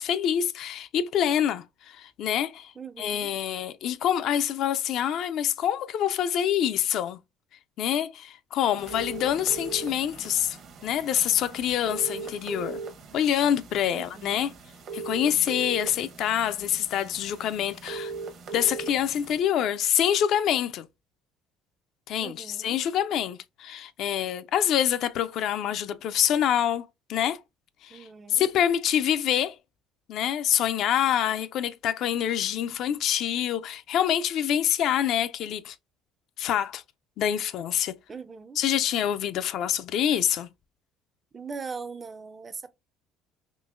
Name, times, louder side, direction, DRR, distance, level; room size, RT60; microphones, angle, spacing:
voice 1, 0.0-7.2 7.8-10.6 10.8-12.8 13.1-14.5 14.9-18.1 18.5-20.9 22.1-27.4 27.8-29.6 30.1-35.8 36.4-36.8 37.2-38.0 38.6-40.5, left 10 dB, 65° left, 0.4 m, -26 dB
voice 2, 2.8-3.3 13.9-14.6 22.2-22.8 27.9-28.5 38.1-38.6 41.3-42.7, right 5 dB, 30° right, 0.4 m, -40 dB
sound 1, 8.8-19.4, right 4 dB, 55° right, 0.9 m, -40 dB
3.7 x 2.8 x 2.4 m
supercardioid pair, 80°, 0 cm